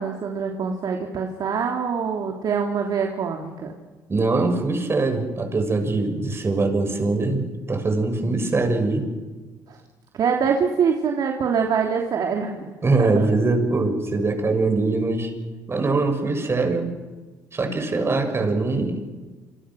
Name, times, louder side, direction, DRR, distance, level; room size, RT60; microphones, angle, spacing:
voice 1, 0.0-3.7 9.7-9.8 10.1-12.7 13.0-13.3, right 6 dB, 55° right, 2 dB, 3.1 m, -24 dB
voice 2, 4.1-9.1 12.8-15.3 15.7-16.9 17.5-19.1, right 3 dB, 30° right, 5 dB, 6.6 m, -22 dB
27.5 x 27.5 x 6.4 m, 1.3 s
supercardioid pair, 65°, 8 cm